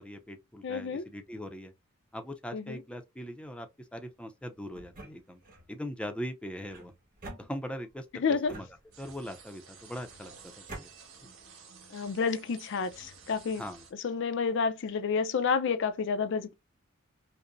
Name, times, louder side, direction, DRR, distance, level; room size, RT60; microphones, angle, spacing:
voice 1, 0.0-1.7 2.1-5.4 5.7-6.9 7.4-8.7 9.0-10.9 13.6-13.8, equal, 5° left, 0.5 m, -41 dB
voice 2, 0.6-1.0 2.5-2.8 8.2-8.5 11.9-13.6 14.0-16.5, left 5 dB, 60° left, 0.5 m, -29 dB
sound 1, 4.7-5.7 6.7-8.0 8.5-9.3 10.1-10.9, right 2 dB, 45° right, 1.5 m, -47 dB
sound 2, 8.9-13.9, right 5 dB, 75° right, 1.3 m, -53 dB
5.1 x 2.0 x 2.5 m
head